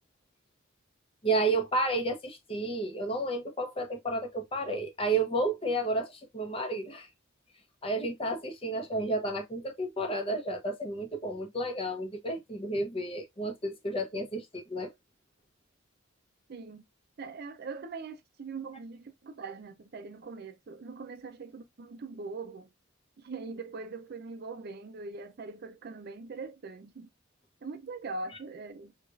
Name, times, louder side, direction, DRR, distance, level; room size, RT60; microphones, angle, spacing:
voice 1, 1.2-7.1 7.8-14.9, right 2 dB, 25° left, 0.7 m, -31 dB
voice 2, 16.5-16.8 17.2-22.7 23.2-27.1 27.6-28.9, right 4 dB, 50° right, 0.4 m, -41 dB
4.6 x 2.4 x 2.4 m
head